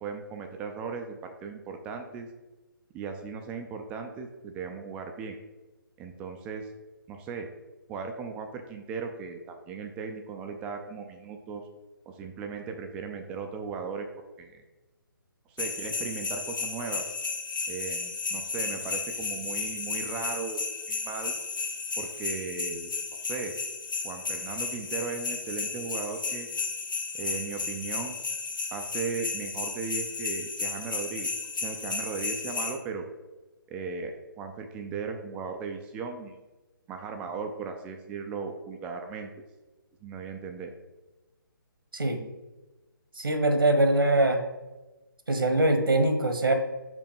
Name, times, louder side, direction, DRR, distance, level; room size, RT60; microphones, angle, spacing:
voice 1, 0.0-2.3 2.9-5.4 6.0-6.7 7.1-7.5 7.9-11.6 12.1-14.1 14.4-14.6 15.5-17.0 17.7-21.4 22.0-22.9 23.2-23.5 24.0-26.5 27.1-28.1 28.7-33.1 33.7-36.4 36.9-39.4 40.0-40.7, right 5 dB, 10° right, 4 dB, 0.3 m, -37 dB
sound 1, 15.6-32.7, left 4 dB, 65° left, 1.3 m, -33 dB
voice 2, 43.2-44.4 45.3-46.5, right 2 dB, 75° right, 7 dB, 1.1 m, -23 dB
5.4 x 4.2 x 5.4 m, 1.2 s
figure-of-eight pair, 140°, 12 cm